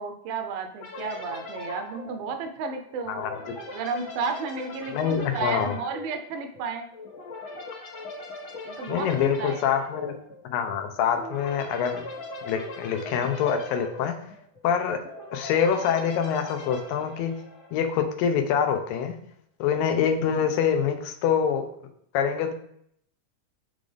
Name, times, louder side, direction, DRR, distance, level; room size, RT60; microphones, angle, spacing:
voice 1, 0.0-3.2 3.7-6.9 8.7-9.6, right 5 dB, 85° right, 6 dB, 2.4 m, -33 dB
sound 1, 0.8-18.0, left 2 dB, 50° left, 1.6 m, -40 dB
voice 2, 3.1-3.4 4.9-5.8 8.9-10.2 10.4-12.0 12.4-14.2 14.6-15.0 15.3-17.3 17.7-19.2 19.6-21.7 22.1-22.5, left 7 dB, 85° left, 6 dB, 2.5 m, -25 dB
9.5 x 3.9 x 3.3 m, 0.68 s
omnidirectional pair, 3.9 m